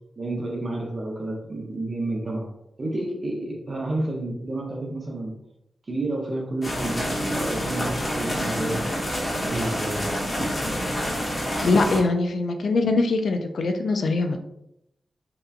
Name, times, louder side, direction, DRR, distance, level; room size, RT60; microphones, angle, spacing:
voice 1, 0.2-2.5 2.8-5.3 5.9-8.8 9.2-10.0, right 2 dB, 45° right, -1 dB, 0.6 m, -30 dB
sound 1, 6.6-12.0, equal, 35° left, 1.0 m, -28 dB
voice 2, 11.6-14.4, left 3 dB, 75° left, 5 dB, 0.3 m, -22 dB
2.8 x 2.2 x 2.3 m, 0.81 s
cardioid pair, 70°, 0 cm